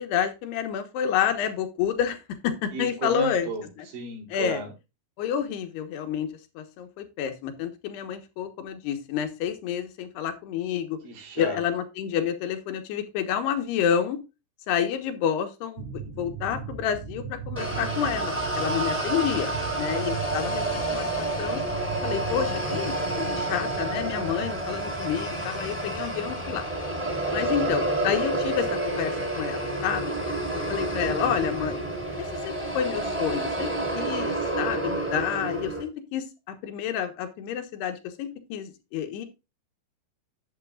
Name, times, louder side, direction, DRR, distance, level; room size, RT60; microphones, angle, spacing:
voice 1, 0.0-3.5 4.3-4.6 5.2-6.3 6.6-11.0 11.4-14.2 14.7-21.6 22.0-26.7 27.3-30.1 30.5-31.8 32.2-39.3, left 8 dB, 85° left, 7 dB, 3.3 m, -29 dB
voice 2, 2.7-4.7 11.0-11.6, right 2 dB, 60° right, 0 dB, 4.9 m, -33 dB
sound 1, 15.8-27.7, right 6 dB, 85° right, 3.6 m, -39 dB
sound 2, 17.6-35.8, right 2 dB, 5° right, 2.8 m, -29 dB
11.5 x 8.1 x 2.4 m, 0.26 s
omnidirectional pair, 4.6 m